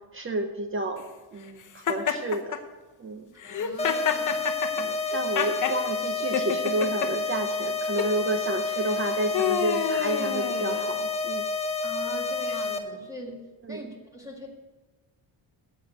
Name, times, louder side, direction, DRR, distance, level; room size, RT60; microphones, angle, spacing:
voice 1, 0.1-1.0 1.3-2.6 3.0-3.3 4.7-11.4 13.6-13.9, right 2 dB, 25° right, 6 dB, 0.7 m, -31 dB
Laughter, 1.9-2.6 3.4-5.8 6.3-7.1 7.8-8.1 8.9-11.1, left 8 dB, 40° left, 0.9 m, -28 dB
voice 2, 3.4-4.5 11.8-14.5, equal, 5° right, -1 dB, 1.8 m, -42 dB
sound 1, 3.8-12.8, left 3 dB, 15° left, 0.7 m, -29 dB
9.1 x 8.0 x 9.1 m, 1.3 s
cardioid pair, 175°, 47 cm